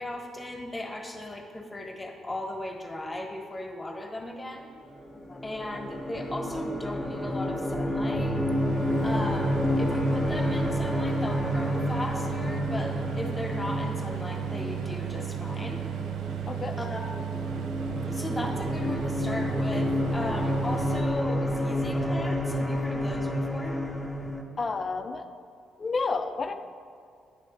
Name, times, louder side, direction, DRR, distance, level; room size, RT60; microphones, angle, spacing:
voice 1, 0.0-4.7 5.4-8.4 9.0-15.8 16.8-17.0 18.0-23.8, left 1 dB, 20° left, 2 dB, 1.3 m, -37 dB
sound 1, 4.9-24.4, left 1 dB, 5° left, 1.0 m, -30 dB
sound 2, 8.2-21.0, right 11 dB, 70° right, 0.4 m, -34 dB
voice 2, 16.5-16.8 24.6-25.3 25.8-26.5, left 4 dB, 40° left, 8 dB, 0.6 m, -30 dB
9.4 x 3.2 x 5.6 m, 2.3 s
hypercardioid pair, 45°, 0 cm